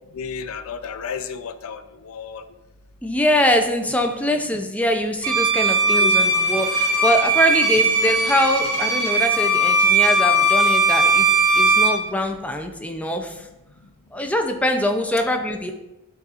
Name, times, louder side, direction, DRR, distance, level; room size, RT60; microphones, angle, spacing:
voice 1, 0.1-2.4 5.9-6.1 15.2-15.3, left 6 dB, 70° left, 10 dB, 0.5 m, -32 dB
voice 2, 3.0-11.3 11.5-13.5 14.1-15.7, equal, 5° left, 4 dB, 0.5 m, -23 dB
Bowed string instrument, 5.2-12.0, right 2 dB, 85° right, 1.1 m, -18 dB
10.5 x 4.1 x 2.5 m, 0.97 s
head